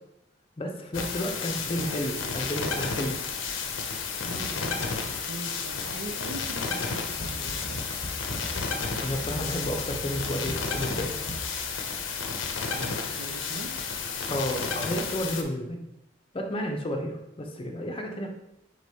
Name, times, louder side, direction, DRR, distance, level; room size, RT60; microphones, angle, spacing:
voice 1, 0.6-3.2 9.0-11.2 14.3-15.8 16.3-18.3, equal, 30° left, 3 dB, 0.6 m, -31 dB
sound 1, 0.9-15.4, left 5 dB, 85° left, 0.6 m, -32 dB
voice 2, 1.5-1.9 2.2-2.4 4.2-7.8 12.6-13.7, right 2 dB, 65° right, 6 dB, 0.5 m, -41 dB
sound 2, 7.2-11.8, equal, 45° right, 1.5 m, -39 dB
4.7 x 4.1 x 2.8 m, 0.83 s
head